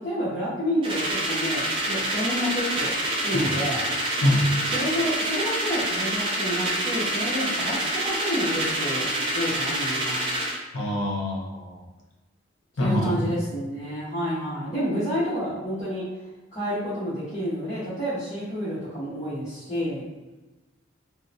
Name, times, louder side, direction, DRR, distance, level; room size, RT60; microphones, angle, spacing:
voice 1, 0.0-2.9 3.2-3.8 4.7-9.1 9.3-10.2 12.8-16.0 16.5-20.0, equal, 35° left, -15 dB, 0.9 m, -29 dB
sound 1, 0.8-10.6, right 1 dB, 25° right, 0.4 m, -27 dB
voice 2, 4.2-4.5 10.7-11.8 12.8-13.2, left 1 dB, 75° left, -2 dB, 0.7 m, -25 dB
2.8 x 2.1 x 2.5 m, 1.1 s
head